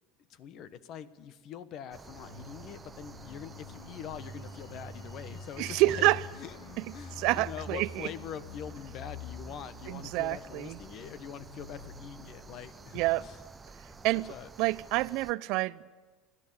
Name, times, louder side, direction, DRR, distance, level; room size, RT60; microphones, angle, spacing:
voice 1, 0.3-6.6 6.9-13.4 14.3-14.5, left 9 dB, 50° left, 1.2 m, -44 dB
sound 1, 1.9-15.3, right 4 dB, 20° right, 0.8 m, -51 dB
sound 2, 2.0-14.4 14.7-14.9, left 3 dB, 90° left, 2.8 m, -47 dB
voice 2, 5.6-6.2 6.8-6.9 7.2-8.1 9.9-10.8 12.9-13.2 14.0-14.3 14.6-15.9, right 19 dB, 65° right, 0.6 m, -28 dB
28.0 x 11.5 x 8.7 m
supercardioid pair, 110°, 0 cm